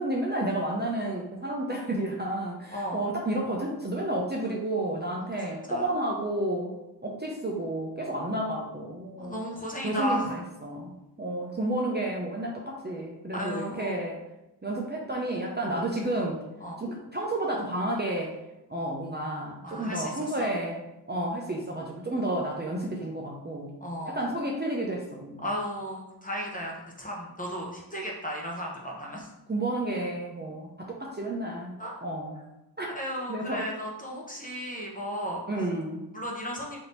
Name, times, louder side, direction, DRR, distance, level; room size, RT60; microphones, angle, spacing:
voice 1, 0.0-6.7 7.0-9.4 9.8-14.2 14.6-16.4 16.8-18.3 18.7-20.8 21.1-23.7 24.1-25.5 29.5-31.7 32.0-32.4 32.8-33.0 33.3-33.7 35.5-36.0, right 1 dB, 25° right, -2 dB, 0.6 m, -31 dB
voice 2, 9.2-10.3 13.3-14.0 16.6-16.8 19.6-20.1 20.4-20.5 23.8-24.2 25.4-26.7 27.0-29.3 31.8-32.0 32.9-35.4 36.1-36.8, equal, 20° left, -2 dB, 1.0 m, -34 dB
3.5 x 2.9 x 4.0 m, 0.95 s
wide cardioid pair, 70°, 41 cm